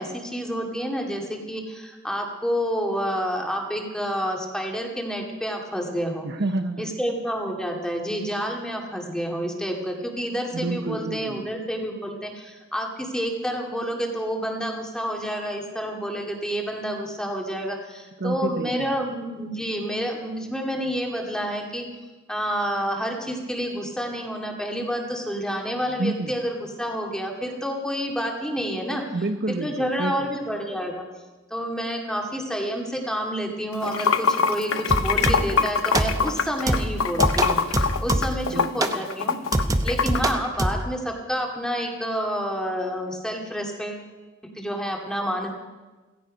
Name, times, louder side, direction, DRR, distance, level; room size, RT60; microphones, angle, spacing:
voice 1, 0.0-6.3 6.8-21.9 22.3-29.0 29.5-31.0 31.5-39.4 39.8-44.1 44.5-45.5, equal, 5° left, 1 dB, 2.2 m, -29 dB
voice 2, 6.2-6.9 10.5-11.5 18.2-19.1 26.0-26.3 29.1-30.3 38.5-38.9, right 2 dB, 55° right, 7 dB, 0.8 m, -29 dB
Water / Sink (filling or washing), 33.7-40.2, left 5 dB, 90° left, 0.8 m, -23 dB
sound 1, 34.9-35.6 35.9-36.4 36.7-38.5 38.8-39.0 39.5-40.9, right 1 dB, 15° right, 0.8 m, -25 dB
16.5 x 15.5 x 5.3 m, 1.2 s
head